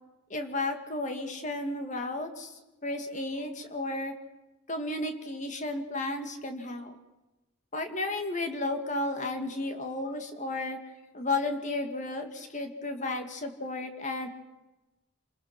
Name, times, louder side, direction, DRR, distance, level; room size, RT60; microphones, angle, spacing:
voice 1, 0.3-2.5 2.8-4.1 4.7-7.0 7.7-10.8 11.1-14.3, left 2 dB, 35° left, 6 dB, 2.3 m, -33 dB
29.0 x 20.5 x 6.1 m, 1.1 s
head